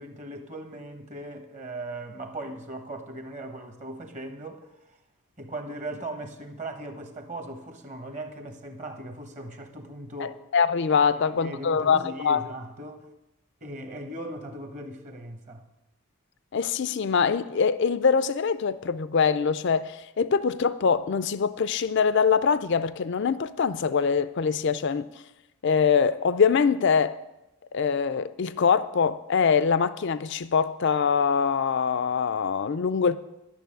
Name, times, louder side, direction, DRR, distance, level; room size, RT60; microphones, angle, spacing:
voice 1, 0.0-5.0 5.4-10.4 11.2-13.1 13.6-15.6, right 1 dB, 30° right, 1.1 m, -38 dB
voice 2, 10.2-12.4 16.5-25.1 25.6-27.2 27.7-33.2, left 6 dB, 55° left, 0.4 m, -23 dB
11.5 x 6.9 x 9.1 m
head